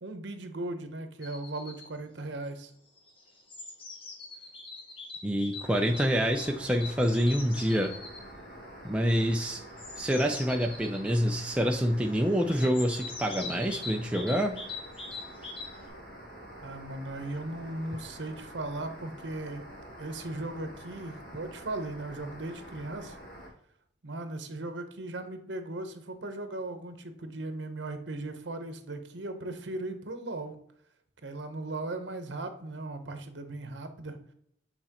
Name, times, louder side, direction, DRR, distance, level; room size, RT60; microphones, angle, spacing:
voice 1, 0.0-2.7 16.6-19.7 20.0-23.2 24.0-30.6 31.2-34.2, right 2 dB, 70° right, 7 dB, 0.9 m, -37 dB
sound 1, 1.2-1.9 3.0-8.2 9.6-11.1 12.5-15.9, left 3 dB, 30° left, 1.0 m, -42 dB
voice 2, 5.2-7.9 8.8-9.6 10.0-14.6, equal, 5° right, 2 dB, 0.4 m, -27 dB
sound 2, 5.6-23.5, equal, 55° left, 1.8 m, -47 dB
8.0 x 4.2 x 2.9 m, 0.69 s
head